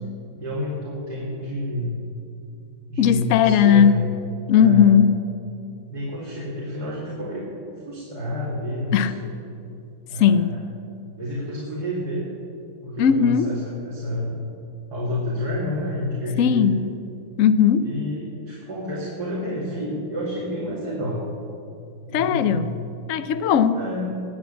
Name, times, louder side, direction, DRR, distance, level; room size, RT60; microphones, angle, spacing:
voice 1, 0.3-2.0 2.9-4.1 4.5-4.9 5.9-7.5 7.8-9.3 10.0-10.7 11.1-12.3 12.8-14.4 14.9-16.7 17.8-21.2 22.1-22.8 23.7-24.1, left 1 dB, 50° right, -6 dB, 3.1 m, -29 dB
voice 2, 3.0-4.0 4.5-5.2 8.9-9.1 10.2-10.6 13.0-13.5 16.4-16.8 17.4-17.9 22.1-22.7 23.1-23.8, left 8 dB, 90° left, 12 dB, 0.7 m, -17 dB
20.5 x 7.6 x 8.5 m, 2.6 s
omnidirectional pair, 2.2 m